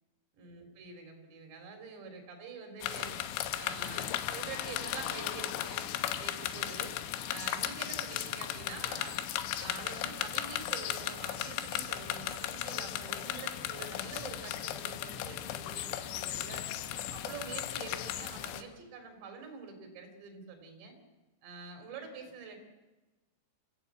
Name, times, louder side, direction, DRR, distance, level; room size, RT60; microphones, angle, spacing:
voice 1, 0.3-3.2 3.6-5.9 6.2-6.9 7.3-9.2 9.6-16.7 17.1-21.0 21.4-22.6, right 5 dB, 70° right, 4 dB, 5.3 m, -46 dB
sound 1, 2.8-18.6, left 12 dB, 85° left, 3.4 m, -36 dB
26.0 x 14.5 x 8.3 m, 1.1 s
omnidirectional pair, 5.3 m